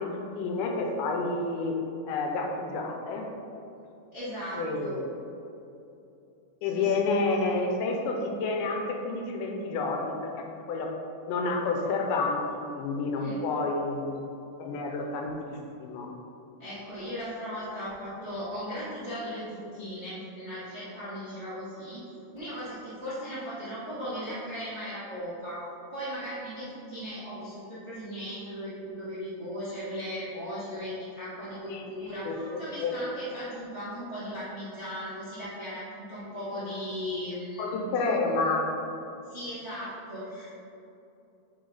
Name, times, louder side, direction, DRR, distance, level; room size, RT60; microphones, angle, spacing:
voice 1, 0.0-1.8 2.0-3.3 4.5-5.0 6.6-10.9 11.3-14.2 14.6-16.1 31.7-31.8 32.3-33.0 37.6-38.8, left 3 dB, 80° left, 2 dB, 2.1 m, -29 dB
voice 2, 4.1-5.0 6.6-7.0 13.1-13.4 16.6-22.0 22.3-25.6 25.9-37.7 39.3-40.5, equal, 65° right, -12 dB, 0.6 m, -37 dB
7.8 x 3.9 x 4.0 m, 2.7 s
omnidirectional pair, 3.9 m